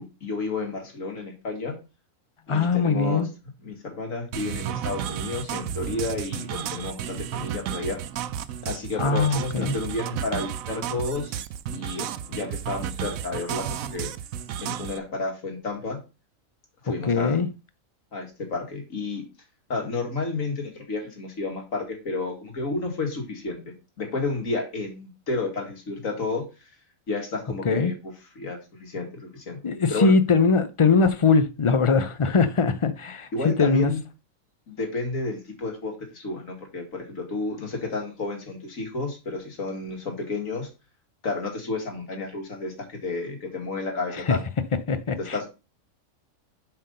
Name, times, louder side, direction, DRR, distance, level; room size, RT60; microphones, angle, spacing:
voice 1, 0.0-1.8 2.5-3.3 3.6-8.0 8.6-11.3 11.7-14.1 14.6-16.0 16.8-17.4 18.1-19.2 19.7-26.4 27.1-29.6 29.9-30.1 33.3-34.0 34.7-40.7 41.2-44.5 45.2-45.5, left 3 dB, 70° left, 2.3 m, -31 dB
voice 2, 2.5-3.3 9.0-9.8 17.1-17.5 27.6-27.9 29.6-33.9 44.3-44.4 44.9-45.5, left 4 dB, 50° left, 0.3 m, -21 dB
sound 1, 4.3-15.0, right 9 dB, 80° right, 1.0 m, -33 dB
7.5 x 4.4 x 5.4 m
omnidirectional pair, 1.4 m